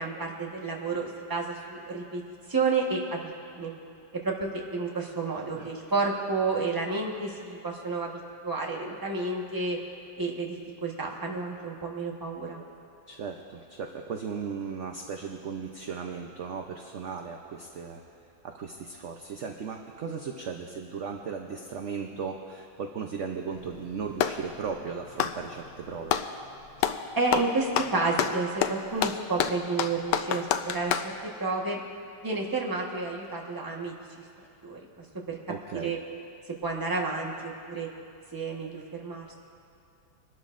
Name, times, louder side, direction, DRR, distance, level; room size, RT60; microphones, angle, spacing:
voice 1, 0.0-2.2 2.5-3.2 3.5-3.7 4.1-9.8 10.2-12.6 27.1-31.1 31.4-31.8 32.2-34.2 34.6-34.8 35.3-35.4 35.7-36.0 36.6-37.9 38.3-39.3, right 3 dB, 15° right, -1 dB, 1.0 m, -30 dB
voice 2, 13.1-18.0 18.4-26.2 34.4-34.5 35.5-35.9, right 6 dB, 60° right, 3 dB, 0.8 m, -36 dB
Clapping, 23.5-24.5 25.1-26.3 26.8-27.0 27.3-31.1, left 9 dB, 75° left, 1.2 m, -28 dB
23.5 x 12.5 x 2.5 m, 2.5 s
omnidirectional pair, 2.0 m